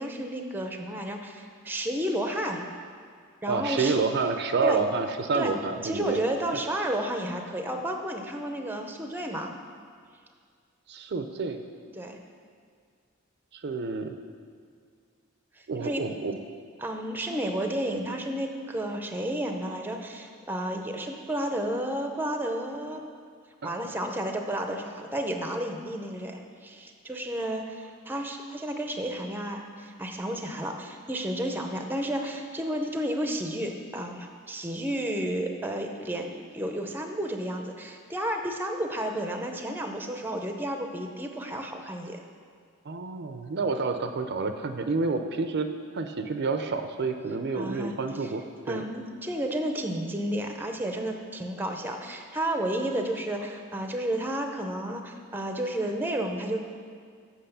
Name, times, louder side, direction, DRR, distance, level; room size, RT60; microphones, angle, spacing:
voice 1, 0.0-2.6 3.4-4.0 4.6-4.8 5.3-5.5 5.8-9.5 11.9-12.2 15.6-16.0 16.8-23.0 23.6-42.2 47.5-48.3 48.7-56.6, right 1 dB, 10° right, 4 dB, 0.6 m, -32 dB
voice 2, 3.5-6.2 10.9-11.6 13.5-14.2 15.7-16.4 23.6-23.7 42.9-45.7 45.9-48.9, right 4 dB, 55° right, 7 dB, 0.5 m, -29 dB
7.8 x 6.2 x 6.8 m, 2.1 s
head